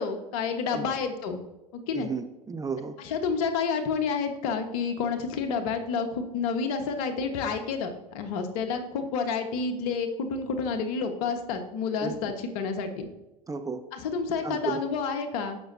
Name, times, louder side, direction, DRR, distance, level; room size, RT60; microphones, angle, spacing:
voice 1, 0.0-1.4 1.7-2.1 3.0-13.0 13.9-15.6, left 5 dB, 60° left, 6 dB, 1.4 m, -29 dB
voice 2, 1.9-2.9 12.0-12.2 13.5-13.8 14.4-14.8, right 5 dB, 15° right, 7 dB, 0.9 m, -33 dB
18.5 x 6.4 x 2.8 m, 0.98 s
hypercardioid pair, 80°, 21 cm